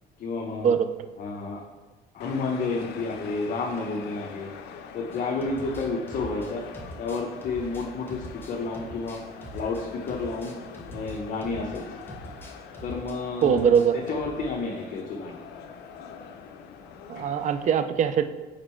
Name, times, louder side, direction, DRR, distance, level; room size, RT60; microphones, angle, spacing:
voice 1, 0.2-0.7 1.2-1.6 2.1-4.5 4.9-6.6 7.0-9.2 9.5-10.5 10.9-12.0 12.8-13.7 13.9-15.4 17.1-17.3, left 3 dB, 50° left, -1 dB, 0.8 m, -31 dB
sound 1, 2.2-17.8, left 6 dB, 80° left, 0.5 m, -44 dB
sound 2, 5.1-11.8 12.1-13.2 13.4-14.4, right 1 dB, 15° left, 1.1 m, -43 dB
voice 2, 13.4-13.9 17.1-18.4, right 7 dB, 45° right, 10 dB, 0.4 m, -22 dB
5.1 x 4.4 x 4.4 m, 1.2 s
cardioid pair, 110°, 17 cm